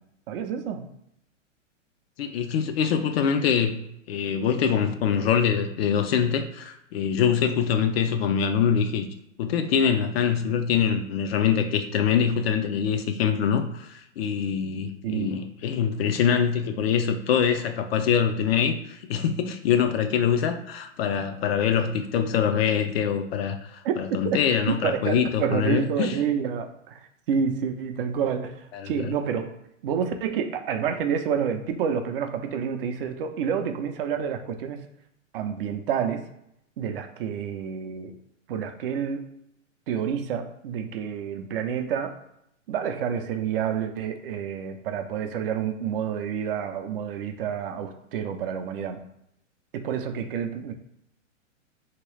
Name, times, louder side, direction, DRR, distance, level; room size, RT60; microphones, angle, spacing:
voice 1, 0.3-0.9 15.0-15.4 23.8-24.4 24.7-29.5 29.8-34.9 35.3-36.3 36.8-38.1 38.5-39.3 39.9-42.2 42.7-49.0 49.7-50.7, right 7 dB, 50° right, 7 dB, 0.5 m, -29 dB
voice 2, 2.2-9.1 9.4-26.2 28.7-29.1, left 7 dB, 55° left, 7 dB, 0.5 m, -24 dB
2.9 x 2.9 x 3.2 m, 0.79 s
hypercardioid pair, 115°, 38 cm